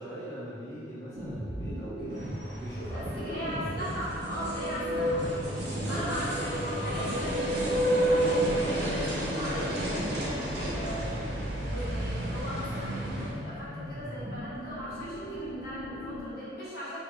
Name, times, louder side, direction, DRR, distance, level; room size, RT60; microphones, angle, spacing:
voice 1, 0.0-2.3 2.5-3.9 5.8-6.2, equal, 20° left, -13 dB, 0.9 m, -41 dB
sound 1, 1.1-16.3, equal, 25° right, 0.3 m, -39 dB
Thunder, 1.8-1.9 2.1-9.4 11.1-11.2, equal, 85° left, 1.4 m, -50 dB
sound 2, 2.1-13.3, right 1 dB, 80° right, 0.7 m, -31 dB
voice 2, 2.9-5.3 5.8-11.1 11.5-17.0, equal, 60° left, -10 dB, 1.1 m, -39 dB
3.2 x 2.3 x 3.7 m, 2.3 s
head